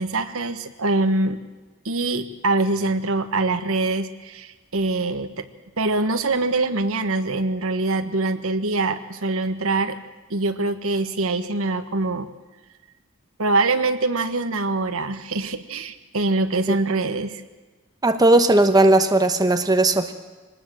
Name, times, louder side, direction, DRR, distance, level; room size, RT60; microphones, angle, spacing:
voice 1, 0.0-1.4 1.8-5.5 5.8-10.0 10.3-12.3 13.4-17.4, right 2 dB, 65° right, 9 dB, 1.4 m, -24 dB
voice 2, 18.0-20.1, right 2 dB, 15° right, 7 dB, 1.1 m, -17 dB
24.5 x 19.0 x 7.7 m, 1.2 s
head